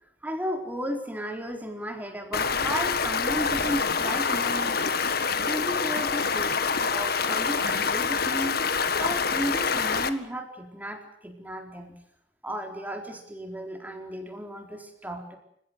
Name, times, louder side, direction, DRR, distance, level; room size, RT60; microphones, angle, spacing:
voice 1, 0.2-6.6 6.9-12.0 12.4-15.4, equal, 10° right, 3 dB, 4.2 m, -34 dB
Stream, 2.3-10.1, left 5 dB, 55° left, 1.7 m, -26 dB
29.0 x 16.5 x 9.5 m, 0.70 s
head